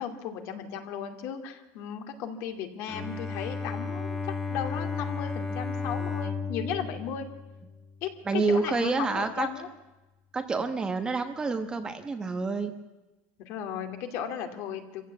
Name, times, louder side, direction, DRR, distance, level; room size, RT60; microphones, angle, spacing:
voice 1, 0.0-4.2 4.5-7.3 8.0-9.7 13.5-15.0, left 8 dB, 50° left, 6 dB, 2.5 m, -35 dB
Bowed string instrument, 2.9-8.1, left 4 dB, 5° left, 1.8 m, -34 dB
voice 2, 8.2-9.5 10.3-12.7, right 4 dB, 15° right, 7 dB, 1.1 m, -28 dB
25.5 x 15.5 x 8.4 m, 1.1 s
cardioid pair, 170°, 6 cm